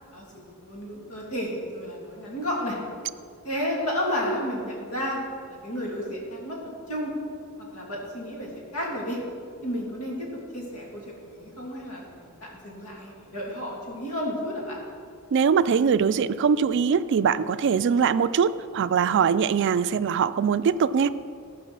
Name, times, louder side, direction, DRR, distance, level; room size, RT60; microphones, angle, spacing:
voice 1, 0.6-2.8 3.4-5.2 5.5-6.6 6.9-7.1 7.7-9.2 9.6-10.3 10.5-14.8, equal, 85° left, -2 dB, 2.6 m, -32 dB
voice 2, 15.3-21.1, right 6 dB, 55° right, 14 dB, 0.3 m, -22 dB
14.5 x 5.0 x 6.1 m, 2.3 s
head